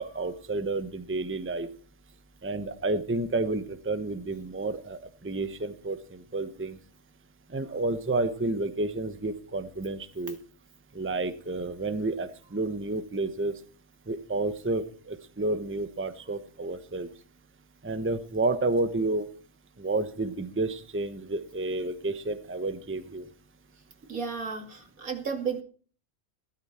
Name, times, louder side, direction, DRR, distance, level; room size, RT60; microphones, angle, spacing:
voice 1, 0.0-1.7 2.4-6.8 7.5-10.4 10.9-13.6 14.1-17.1 17.8-19.3 19.8-23.3, right 2 dB, 10° right, 11 dB, 0.9 m, -30 dB
voice 2, 24.1-25.6, right 6 dB, 80° right, 6 dB, 2.8 m, -33 dB
16.0 x 13.0 x 4.4 m, 0.41 s
omnidirectional pair, 1.5 m